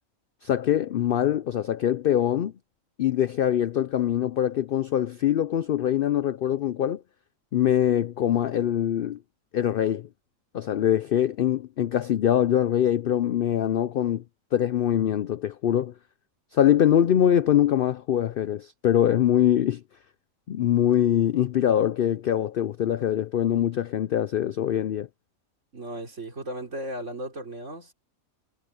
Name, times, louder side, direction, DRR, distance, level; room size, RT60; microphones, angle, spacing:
voice 1, 0.4-2.5 3.0-7.0 7.5-9.2 9.5-10.1 10.5-14.2 14.5-15.9 16.5-19.8 20.5-25.1, left 10 dB, 70° left, 0.5 m, -23 dB
voice 2, 25.7-27.9, right 1 dB, 60° right, 3.9 m, -36 dB
omnidirectional pair, 1.4 m